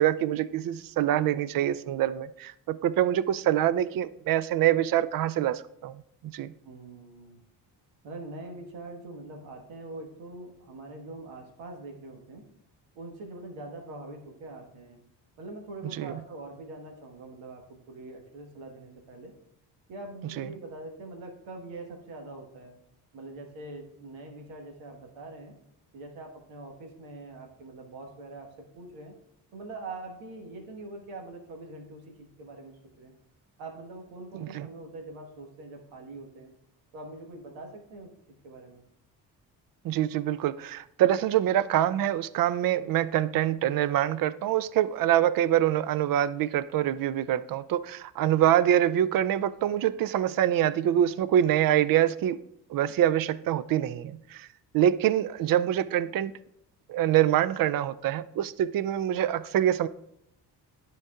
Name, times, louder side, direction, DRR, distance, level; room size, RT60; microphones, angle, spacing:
voice 1, 0.0-6.5 16.0-16.1 20.4-20.5 34.4-34.7 39.8-52.4 52.7-54.5 54.7-56.3 56.9-59.9, right 11 dB, 45° right, 17 dB, 0.5 m, -25 dB
voice 2, 6.6-7.4 8.0-12.5 12.9-15.0 15.4-19.3 19.9-22.7 23.1-25.6 25.9-29.1 29.5-33.1 33.6-36.5 36.9-38.8, right 2 dB, 70° right, 2 dB, 1.5 m, -43 dB
12.0 x 4.6 x 2.4 m, 0.77 s
hypercardioid pair, 45°, 49 cm